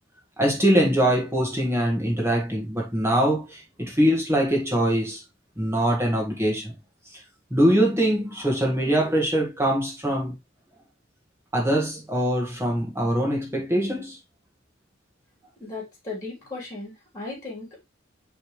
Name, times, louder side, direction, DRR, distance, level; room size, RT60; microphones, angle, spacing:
voice 1, 0.4-5.2 5.6-6.7 7.5-10.3 11.5-14.2, right 1 dB, 15° right, 1.7 m, -23 dB
voice 2, 15.6-17.9, left 3 dB, 20° left, 3.3 m, -36 dB
9.3 x 3.5 x 3.1 m
head